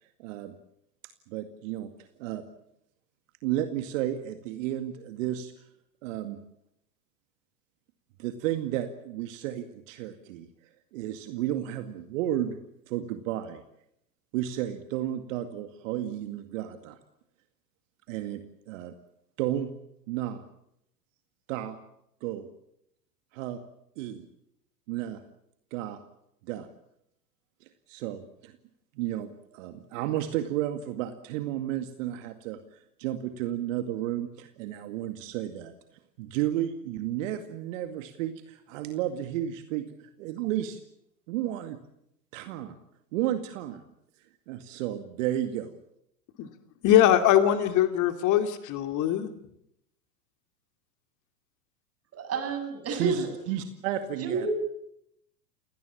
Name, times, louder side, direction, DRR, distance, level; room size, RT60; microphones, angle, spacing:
voice 1, 0.2-0.5 1.3-1.9 2.2-2.4 3.4-5.5 6.0-6.4 8.2-10.5 10.9-12.6 12.9-13.6 14.3-17.0 18.1-18.4 18.7-18.9 19.4-19.7 20.1-20.4 21.5-21.8 22.2-22.5 23.3-23.6 24.0-24.3 24.9-25.2 25.7-26.0 26.5-26.7 27.9-28.5 29.0-35.7 36.2-40.8 41.3-41.8 42.3-42.8 43.1-43.9 44.5-45.7 52.9-54.5, right 12 dB, 55° right, 8 dB, 2.2 m, -32 dB
voice 2, 46.8-49.3, left 11 dB, 40° left, 8 dB, 2.5 m, -22 dB
voice 3, 52.2-53.3 54.2-54.6, right 4 dB, 30° right, 6 dB, 7.5 m, -29 dB
29.5 x 18.0 x 8.6 m, 0.77 s
figure-of-eight pair, 90°, 47 cm